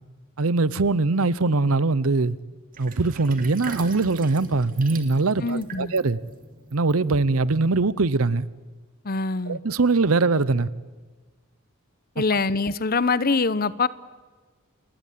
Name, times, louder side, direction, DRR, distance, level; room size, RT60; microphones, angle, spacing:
voice 1, 0.4-2.4 2.8-6.2 6.7-8.5 9.5-10.7, right 3 dB, 80° right, 0.8 m, -22 dB
Sink (filling or washing), 2.7-7.5, right 4 dB, 40° right, 2.5 m, -41 dB
voice 2, 5.4-5.9 9.0-9.6 12.2-13.9, left 4 dB, 45° left, 0.8 m, -24 dB
28.5 x 21.0 x 8.6 m
head